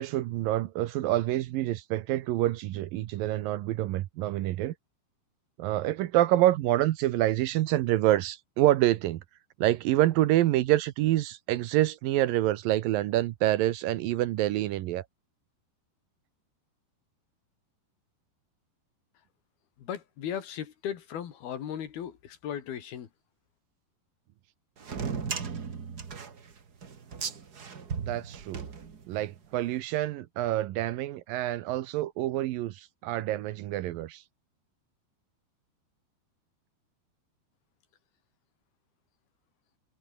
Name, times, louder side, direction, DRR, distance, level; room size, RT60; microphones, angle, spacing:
voice 1, 0.0-4.7 5.6-9.2 9.6-15.1 28.0-28.7 29.1-34.2, right 14 dB, 75° right, 2.3 m, -27 dB
voice 2, 19.8-23.1, left 9 dB, 65° left, 4.0 m, -37 dB
sound 1, 24.8-29.4, right 6 dB, 45° right, 1.2 m, -36 dB
omnidirectional pair, 4.9 m